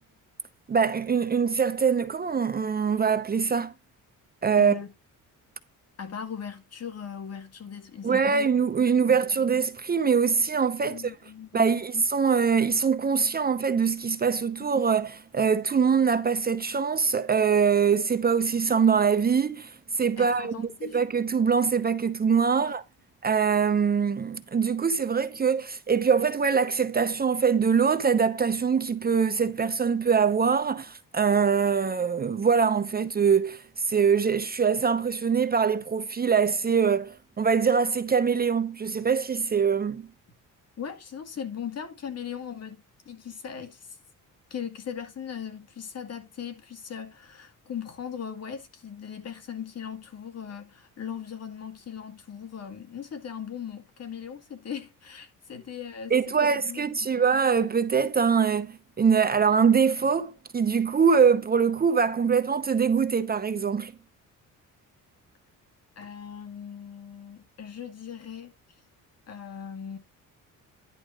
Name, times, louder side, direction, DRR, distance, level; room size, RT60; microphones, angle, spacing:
voice 1, 0.7-3.7 4.4-4.8 8.0-11.1 11.5-22.8 23.2-40.1 56.1-63.9, right 6 dB, 30° right, 0.7 m, -23 dB
voice 2, 4.6-4.9 6.0-8.5 9.1-9.4 10.8-11.9 20.2-21.0 40.8-44.0 44.5-57.3 66.0-68.5 69.3-70.0, left 8 dB, 45° left, 2.2 m, -39 dB
11.0 x 4.3 x 4.9 m
cardioid pair, 110°, 33 cm